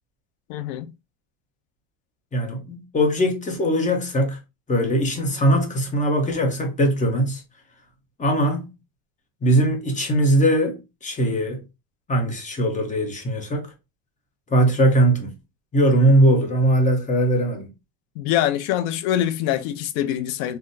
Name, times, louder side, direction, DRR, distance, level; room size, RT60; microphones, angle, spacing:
voice 1, 0.5-0.9 18.2-20.6, left 12 dB, 80° left, 0.6 m, -24 dB
voice 2, 2.3-4.4 4.7-7.4 8.2-8.7 9.4-11.6 12.1-13.7 14.5-15.3 15.7-17.7, right 1 dB, 20° left, 0.8 m, -20 dB
3.9 x 2.1 x 2.5 m
cardioid pair, 135°, 40 cm